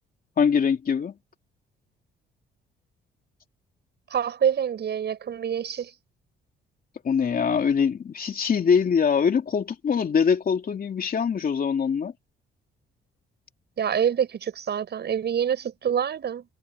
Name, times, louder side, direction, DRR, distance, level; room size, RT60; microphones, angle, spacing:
voice 1, 0.4-1.1 7.0-12.1, left 6 dB, 45° left, 2.9 m, -23 dB
voice 2, 4.1-5.9 13.8-16.5, right 8 dB, 60° right, 7.0 m, -26 dB
cardioid pair, 90°, 20 cm